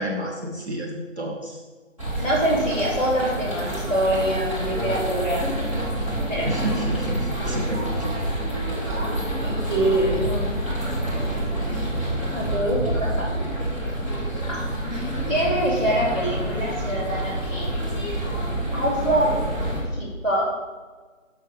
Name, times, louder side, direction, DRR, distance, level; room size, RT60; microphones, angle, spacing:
voice 1, 0.0-1.6 6.5-8.2, right 1 dB, 55° right, 0 dB, 1.1 m, -30 dB
sound 1, 2.0-19.8, right 1 dB, 25° right, 1.8 m, -27 dB
voice 2, 2.2-5.5 6.3-6.5 9.3-10.5 12.3-13.7 14.4-17.8 18.7-19.3 19.9-20.4, right 1 dB, 10° right, -15 dB, 2.1 m, -25 dB
6.3 x 6.3 x 5.4 m, 1.4 s
figure-of-eight pair, 175°, 39 cm